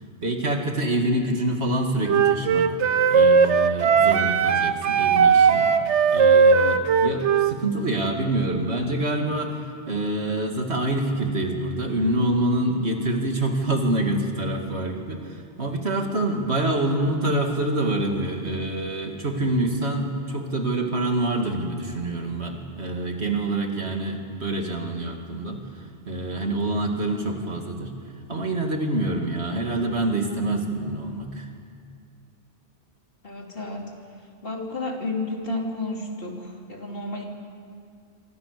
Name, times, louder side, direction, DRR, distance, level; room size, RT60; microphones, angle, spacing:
voice 1, 0.2-2.7 3.1-27.9 28.3-31.5, right 1 dB, 70° right, 2 dB, 2.9 m, -26 dB
Wind instrument woodwind instrument, 2.1-7.6, right 6 dB, 90° right, 1.2 m, -18 dB
voice 2, 33.2-33.9 34.4-37.2, left 2 dB, 55° left, 0 dB, 3.6 m, -31 dB
27.5 x 24.0 x 6.9 m, 2.2 s
omnidirectional pair, 1.1 m